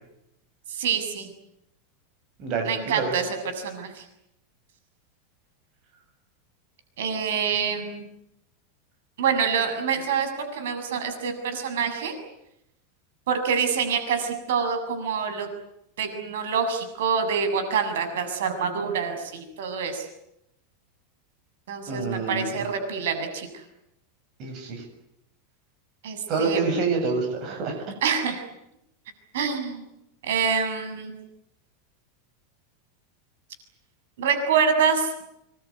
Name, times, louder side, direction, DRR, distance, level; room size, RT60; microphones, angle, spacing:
voice 1, 0.7-1.3 2.6-3.3 3.5-4.1 7.0-8.1 9.2-12.1 13.3-15.5 16.0-20.1 21.7-23.5 26.0-26.8 28.0-28.4 29.3-29.8 30.2-31.3 34.2-35.1, right 6 dB, 75° right, 7 dB, 7.1 m, -26 dB
voice 2, 2.4-3.1 21.9-22.6 24.4-24.8 26.3-27.8, right 4 dB, 30° right, 3 dB, 7.1 m, -27 dB
27.0 x 23.0 x 9.7 m, 0.82 s
supercardioid pair, 180°, 0 cm